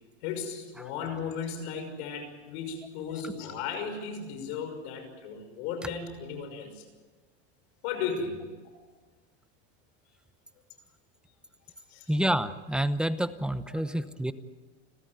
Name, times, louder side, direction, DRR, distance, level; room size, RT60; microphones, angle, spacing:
voice 1, 0.2-6.8 7.8-8.5 11.9-12.1 13.7-13.8, left 6 dB, 65° left, 7 dB, 5.9 m, -35 dB
voice 2, 12.1-14.3, right 1 dB, 5° right, 12 dB, 0.9 m, -28 dB
30.0 x 13.5 x 9.4 m, 1.3 s
supercardioid pair, 125°, 34 cm